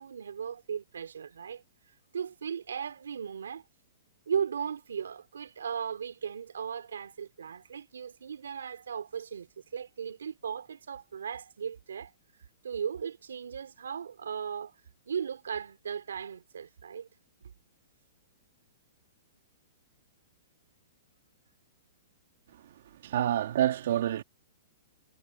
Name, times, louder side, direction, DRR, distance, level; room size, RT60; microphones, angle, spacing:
voice 1, 0.0-1.6 2.1-3.6 4.3-12.1 12.6-14.8 15.1-17.1, right 7 dB, 85° right, 2.4 m, -37 dB
voice 2, 23.0-24.2, right 11 dB, 65° right, 2.0 m, -27 dB
hypercardioid pair, 130°, 0 cm